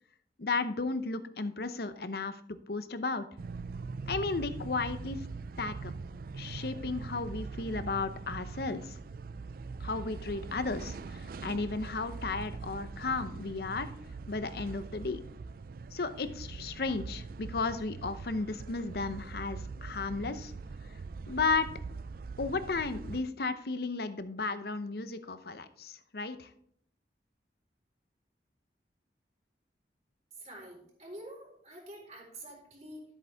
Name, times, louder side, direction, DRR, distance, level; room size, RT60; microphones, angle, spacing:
voice 1, 0.4-3.2 4.1-5.2 5.6-5.9 6.4-9.0 9.8-13.9 14.3-15.2 15.9-20.5 21.3-21.7 22.4-26.5, left 3 dB, 60° left, 11 dB, 0.8 m, -34 dB
sound 1, 3.4-23.2, right 4 dB, 55° right, 0.4 m, -42 dB
voice 2, 30.4-33.0, right 1 dB, 40° right, -1 dB, 4.1 m, -47 dB
13.0 x 8.2 x 3.5 m, 0.67 s
head